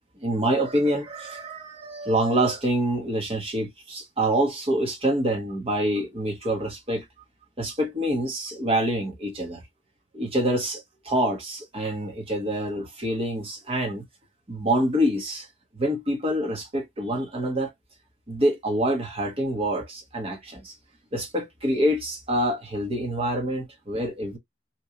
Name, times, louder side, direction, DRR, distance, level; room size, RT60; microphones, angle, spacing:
voice 1, 0.2-7.0 7.6-9.6 10.1-14.0 14.5-15.5 15.7-17.7 18.3-20.7 21.1-24.4, right 1 dB, 30° right, 1.1 m, -26 dB
3.0 x 2.5 x 3.8 m
head